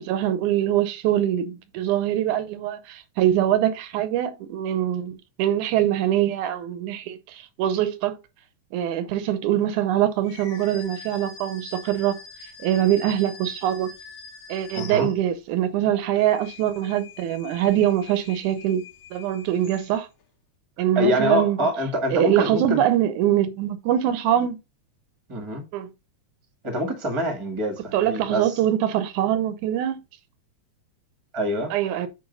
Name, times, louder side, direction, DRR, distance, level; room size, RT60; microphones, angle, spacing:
voice 1, 0.0-8.2 8.7-12.2 12.6-13.9 14.5-18.9 19.1-20.1 20.8-21.7 22.1-24.6 25.7-25.9 27.9-30.0 31.7-32.1, right 11 dB, 80° right, 2.3 m, -23 dB
sound 1, 10.2-15.5 16.0-20.2, left 5 dB, 60° left, 1.4 m, -44 dB
voice 2, 14.7-15.1 20.9-22.8 25.3-25.6 26.6-28.6 31.3-31.7, equal, 15° right, 1.2 m, -25 dB
8.9 x 3.1 x 5.4 m
omnidirectional pair, 3.5 m